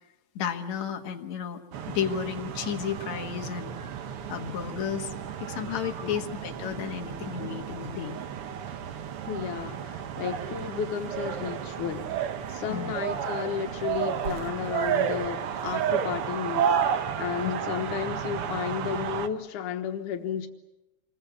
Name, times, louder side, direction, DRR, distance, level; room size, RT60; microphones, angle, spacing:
voice 1, 0.4-1.6 1.9-3.7 4.3-5.1 5.4-8.2 12.7-12.9 17.4-17.5, left 8 dB, 70° left, 4 dB, 2.8 m, -32 dB
sound 1, 1.7-19.3, right 8 dB, 60° right, 1.8 m, -32 dB
voice 2, 9.3-12.1 12.5-20.5, left 8 dB, 90° left, 6 dB, 2.8 m, -33 dB
27.0 x 22.0 x 8.3 m, 0.95 s
omnidirectional pair, 3.4 m